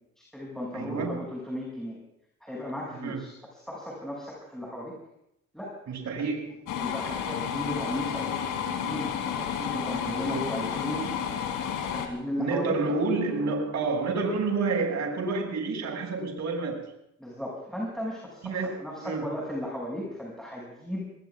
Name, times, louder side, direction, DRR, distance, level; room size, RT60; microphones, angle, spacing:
voice 1, 0.2-2.0 2.4-4.9 5.5-5.8 6.2-6.3 6.8-11.1 11.8-12.8 17.2-21.0, left 1 dB, ahead, -4 dB, 6.4 m, -36 dB
voice 2, 0.7-1.2 3.0-3.2 5.9-6.6 10.0-10.4 12.4-16.9 18.4-18.7 19.0-19.3, right 3 dB, 65° right, 2 dB, 6.5 m, -29 dB
sound 1, 6.7-12.1, left 8 dB, 85° left, 3.1 m, -31 dB
27.0 x 20.0 x 2.4 m, 0.79 s
cardioid pair, 90°, 30 cm